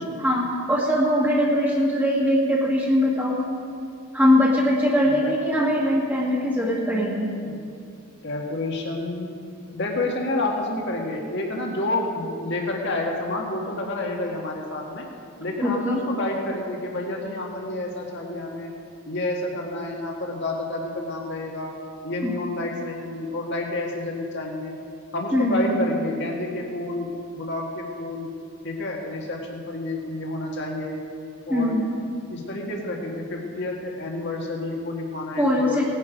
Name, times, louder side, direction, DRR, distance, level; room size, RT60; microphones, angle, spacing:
voice 1, 0.2-3.4 4.1-7.3 15.6-16.0 22.2-22.3 25.3-25.8 31.5-31.9 35.4-35.8, left 1 dB, 10° right, -3 dB, 1.7 m, -21 dB
voice 2, 5.0-5.4 7.5-7.6 8.2-9.3 9.7-15.0 15.4-18.7 19.1-21.7 22.0-24.8 25.1-27.1 27.3-28.3 28.6-31.0 31.5-31.7 32.3-35.8, left 2 dB, 50° left, 0 dB, 1.8 m, -29 dB
18.0 x 9.7 x 5.2 m, 2.5 s
head